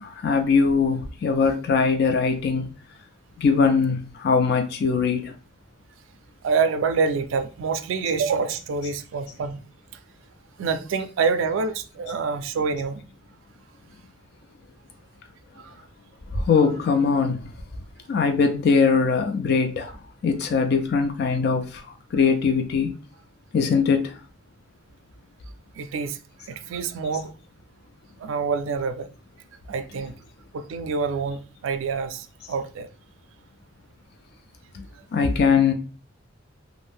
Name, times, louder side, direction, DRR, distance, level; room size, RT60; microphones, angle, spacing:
voice 1, 0.0-2.7 3.4-5.3 8.8-8.9 16.3-17.5 18.1-22.9 23.5-24.2 27.1-27.2 35.1-35.7, left 5 dB, 55° left, 0.4 m, -21 dB
voice 2, 6.4-9.6 10.6-13.0 15.6-15.7 25.8-26.2 26.5-27.3 28.2-29.1 29.7-30.1 30.5-32.9, right 5 dB, 75° right, 0.3 m, -26 dB
2.5 x 2.0 x 3.3 m
head